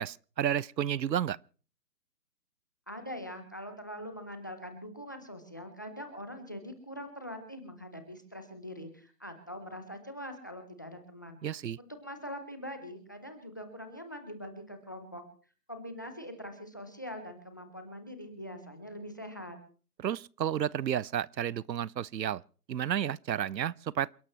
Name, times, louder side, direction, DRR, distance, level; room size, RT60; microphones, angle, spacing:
voice 1, 0.0-1.4 11.4-11.8 20.0-22.4 22.7-24.1, right 10 dB, 85° right, 0.6 m, -31 dB
voice 2, 2.9-11.4 11.8-15.2 15.7-19.6, equal, 10° left, 0.7 m, -43 dB
28.5 x 11.5 x 3.1 m
hypercardioid pair, 160°, 49 cm